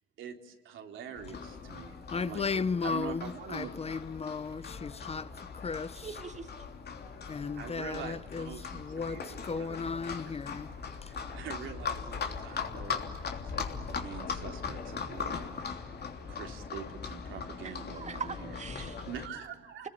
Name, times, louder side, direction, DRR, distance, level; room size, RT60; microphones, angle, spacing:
voice 1, 0.2-3.9 7.5-9.8 10.2-10.3 11.0-13.0 13.4-15.5 15.7-16.0 16.3-18.6 19.1-19.9, right 7 dB, 80° right, 3.5 m, -44 dB
Livestock farm animals working animals, 1.2-19.3, left 5 dB, 55° left, 3.2 m, -40 dB
voice 2, 2.1-6.1 7.3-10.7 11.0-11.1, left 5 dB, 30° left, 0.8 m, -35 dB
voice 3, 6.0-6.7 17.6-19.1, right 5 dB, 35° right, 1.8 m, -42 dB
29.5 x 21.0 x 8.8 m
cardioid pair, 90°, 20 cm